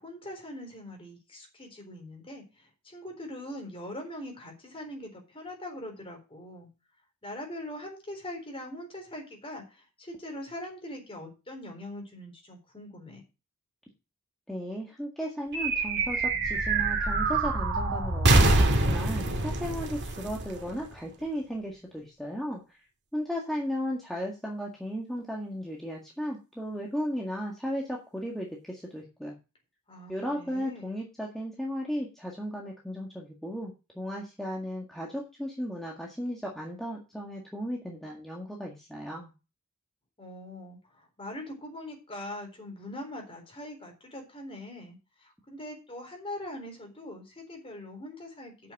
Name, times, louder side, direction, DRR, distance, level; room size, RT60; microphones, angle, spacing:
voice 1, 0.0-6.7 7.2-13.2 29.9-31.0 40.2-48.7, left 1 dB, 25° left, 2 dB, 3.9 m, -42 dB
voice 2, 14.5-22.8 23.1-29.4 30.1-39.3, equal, ahead, -3 dB, 1.8 m, -35 dB
sound 1, 15.5-21.2, right 2 dB, 50° right, 2.0 m, -25 dB
8.5 x 6.4 x 7.2 m, 0.29 s
head